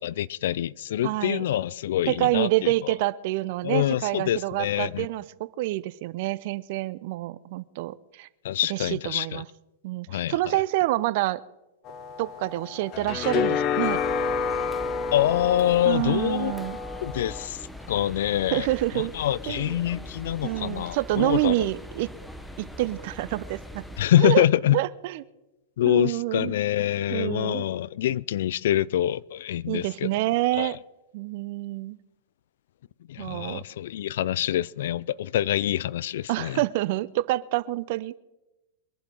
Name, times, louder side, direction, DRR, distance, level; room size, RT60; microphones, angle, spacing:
voice 1, 0.0-2.7 3.6-5.1 8.4-9.4 10.1-10.3 15.1-16.5 17.0-17.6 17.9-18.7 18.9-21.7 24.0-24.8 25.8-30.1 30.6-30.8 33.1-36.6, left 12 dB, 65° left, 0.4 m, -25 dB
voice 2, 1.0-1.4 2.1-8.3 8.7-9.5 9.8-11.4 12.2-14.0 15.9-16.8 18.5-19.1 19.5-19.7 20.4-22.1 22.6-23.8 24.2-24.4 24.7-25.2 25.8-26.6 27.1-27.7 29.7-30.8 31.1-32.0 33.2-33.6 36.3-38.2, right 17 dB, 55° right, 0.6 m, -27 dB
sound 1, 11.9-17.5, left 6 dB, 40° left, 1.1 m, -29 dB
sound 2, 13.8-24.0, equal, 5° left, 1.1 m, -42 dB
23.0 x 11.5 x 3.8 m
hypercardioid pair, 105°, 0 cm